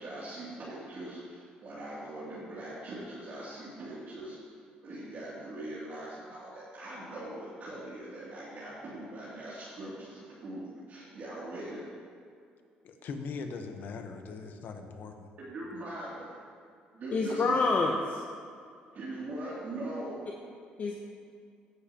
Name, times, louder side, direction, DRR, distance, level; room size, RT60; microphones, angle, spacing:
voice 1, 0.0-4.3 4.8-11.8 15.4-16.3 16.9-17.6 18.9-20.3, right 1 dB, 55° right, -9 dB, 2.8 m, -41 dB
voice 2, 12.8-15.3, left 4 dB, 65° left, 5 dB, 1.1 m, -40 dB
voice 3, 17.1-18.2 20.8-21.0, left 3 dB, 45° left, 1 dB, 0.8 m, -27 dB
16.0 x 7.2 x 3.0 m, 2.2 s
supercardioid pair, 75°, 4 cm